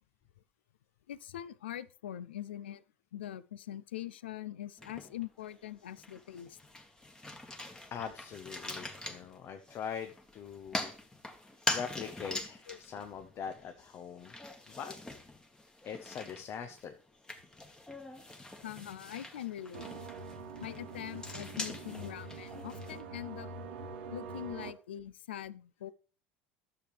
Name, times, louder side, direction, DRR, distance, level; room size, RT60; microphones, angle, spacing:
voice 1, 1.1-2.8 3.1-6.6 12.7-12.8 18.6-19.9 20.6-23.5 24.1-25.9, left 12 dB, 90° left, 0.4 m, -43 dB
sound 1, 4.8-5.5 5.9-23.0, left 2 dB, 15° left, 1.6 m, -43 dB
voice 2, 7.9-10.9 11.7-14.3 14.7-14.9 15.8-16.9, left 7 dB, 45° left, 0.8 m, -42 dB
sound 2, 19.7-24.7, right 4 dB, 85° right, 1.3 m, -45 dB
11.5 x 7.0 x 3.3 m
hypercardioid pair, 85°, 6 cm